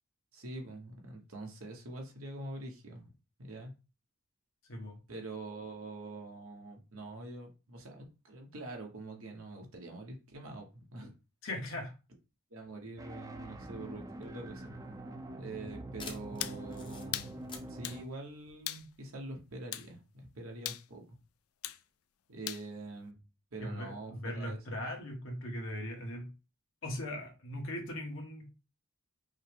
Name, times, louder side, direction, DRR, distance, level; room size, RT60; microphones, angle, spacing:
voice 1, 0.3-3.1 3.4-3.7 5.1-11.1 12.5-14.6 15.4-17.4 17.7-21.2 22.3-23.2 23.5-24.9, right 2 dB, 90° right, 1.2 m, -45 dB
voice 2, 4.7-5.0 11.4-11.9 23.6-26.3 26.8-28.5, left 1 dB, 65° left, 1.3 m, -39 dB
sound 1, 13.0-18.0, right 1 dB, 15° right, 0.5 m, -45 dB
sound 2, 14.2-19.2, left 4 dB, 25° left, 0.7 m, -52 dB
sound 3, 16.4-16.6 17.1-17.3 17.8-18.0 18.7-18.9 19.7-19.9 20.7-20.9 21.6-21.8 22.5-22.7, left 14 dB, 85° left, 0.4 m, -38 dB
5.4 x 2.2 x 3.4 m
head